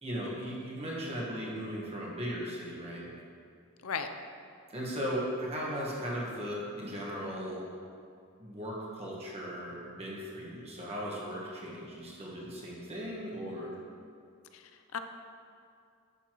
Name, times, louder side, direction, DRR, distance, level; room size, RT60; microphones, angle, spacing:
voice 1, 0.0-3.0 4.7-7.6 8.4-13.7, equal, 30° right, -5 dB, 1.5 m, -37 dB
voice 2, 14.5-15.0, left 6 dB, 70° left, 7 dB, 0.5 m, -36 dB
10.5 x 6.9 x 3.1 m, 2.4 s
head